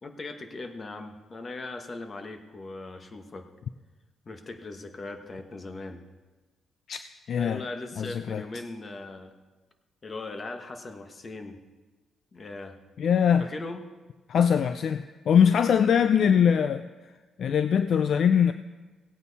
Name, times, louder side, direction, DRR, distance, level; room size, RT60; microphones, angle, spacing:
voice 1, 0.0-3.5 4.2-6.0 7.3-9.3 10.0-11.6 12.3-12.7 13.4-13.8, left 2 dB, 35° left, 6 dB, 1.4 m, -39 dB
voice 2, 7.3-7.6 8.0-8.4 13.0-13.4 14.3-16.8 17.4-18.5, left 7 dB, 60° left, 10 dB, 0.4 m, -22 dB
17.0 x 8.9 x 4.1 m, 1.2 s
cardioid pair, 90°, 0 cm